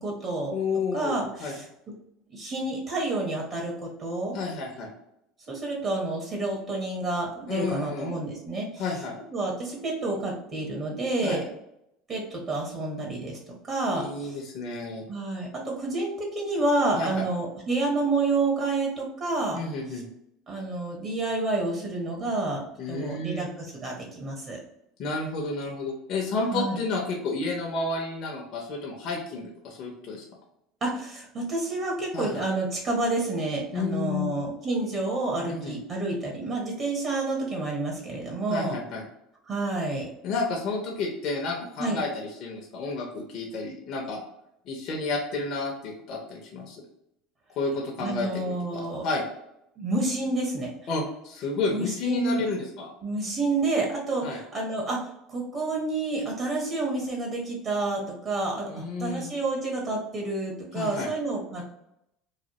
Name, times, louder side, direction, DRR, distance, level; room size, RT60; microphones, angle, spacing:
voice 1, 0.0-0.5 0.9-1.6 2.3-4.3 5.5-8.8 9.3-11.4 12.1-13.4 13.7-14.1 15.1-19.6 20.5-24.6 26.5-26.8 30.8-38.7 39.5-40.1 41.8-42.0 48.0-49.0 49.8-50.7 51.7-52.5 53.0-61.6, right 2 dB, 40° right, -2 dB, 1.0 m, -29 dB
voice 2, 0.5-1.5 4.3-4.9 7.5-8.2 8.8-9.2 11.2-11.4 13.9-15.1 17.0-17.2 19.5-20.1 22.8-23.5 25.0-30.2 32.1-32.4 33.7-34.4 35.5-35.8 38.5-39.0 40.2-44.2 44.6-46.8 47.6-49.2 50.9-52.9 54.2-54.4 58.7-59.3 60.7-61.1, left 3 dB, 55° left, -1 dB, 0.7 m, -31 dB
3.1 x 2.2 x 2.9 m, 0.80 s
supercardioid pair, 95°, 0 cm